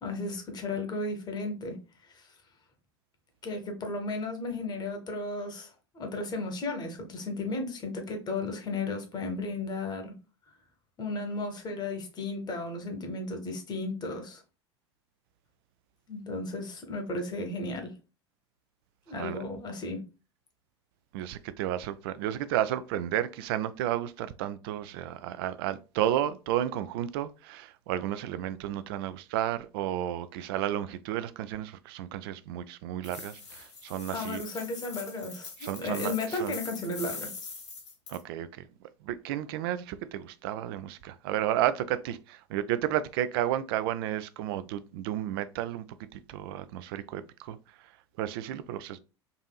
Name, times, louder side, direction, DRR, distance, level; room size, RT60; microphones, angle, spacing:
voice 1, 0.0-2.3 3.4-10.1 11.0-14.4 16.1-17.9 19.1-20.0 34.1-37.3, left 2 dB, 30° left, 1.0 m, -34 dB
voice 2, 21.1-34.4 35.6-36.6 38.1-38.6 39.0-45.8 46.1-47.9 48.2-49.0, right 12 dB, 55° right, 0.4 m, -32 dB
sound 1, 33.0-38.2, left 4 dB, 75° left, 1.0 m, -43 dB
4.0 x 2.5 x 2.3 m
figure-of-eight pair, 80°, 15 cm